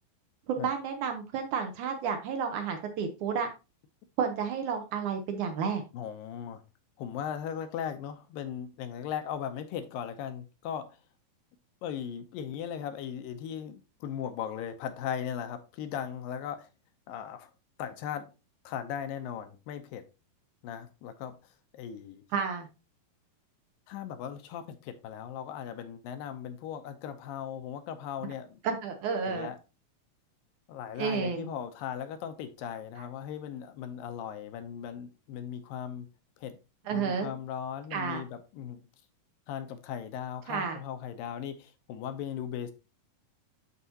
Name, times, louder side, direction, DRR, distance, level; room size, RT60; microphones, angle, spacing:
voice 1, 0.5-3.5 4.2-5.8 22.3-22.7 28.6-29.5 31.0-31.5 36.9-37.3 37.9-38.2 40.5-40.8, right 6 dB, 70° right, 2.1 m, -31 dB
voice 2, 5.9-6.6 7.0-10.9 11.8-16.7 17.1-17.5 17.8-18.3 18.7-20.0 20.6-21.4 21.7-22.2 23.9-28.6 29.3-29.6 30.7-36.1 36.4-36.6 36.9-38.8 39.5-42.7, left 8 dB, 80° left, 2.4 m, -38 dB
12.0 x 4.1 x 2.8 m
omnidirectional pair, 4.2 m